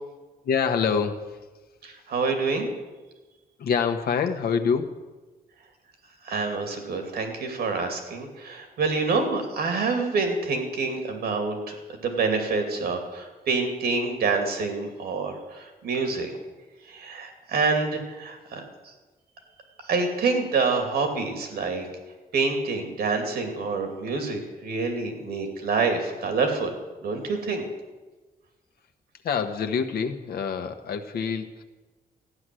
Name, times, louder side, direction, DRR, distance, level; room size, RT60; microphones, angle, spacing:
voice 1, 0.4-1.4 3.6-5.0 29.2-31.6, left 6 dB, 80° left, 7 dB, 1.2 m, -26 dB
voice 2, 1.8-2.7 6.2-16.3 16.8-18.9 19.8-21.9 22.3-26.7 27.0-27.6, right 4 dB, 85° right, 5 dB, 2.7 m, -27 dB
14.5 x 9.9 x 7.7 m, 1.2 s
cardioid pair, 125°, 16 cm